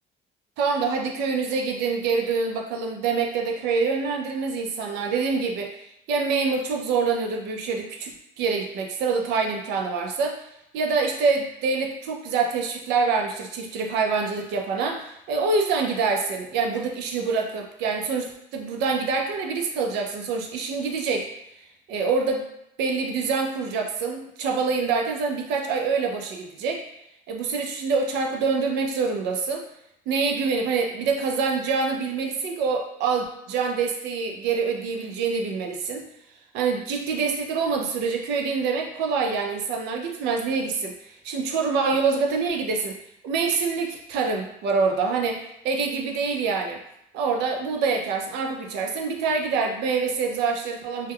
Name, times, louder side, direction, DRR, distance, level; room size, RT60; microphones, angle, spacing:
voice 1, 0.6-5.8 6.1-10.4 10.7-21.3 21.9-22.5 22.8-26.8 27.3-29.6 30.1-36.0 36.5-43.0 43.2-46.8 47.1-51.1, right 4 dB, 90° right, 2 dB, 0.5 m, -26 dB
2.2 x 2.2 x 3.4 m, 0.78 s
cardioid pair, 110°, 17 cm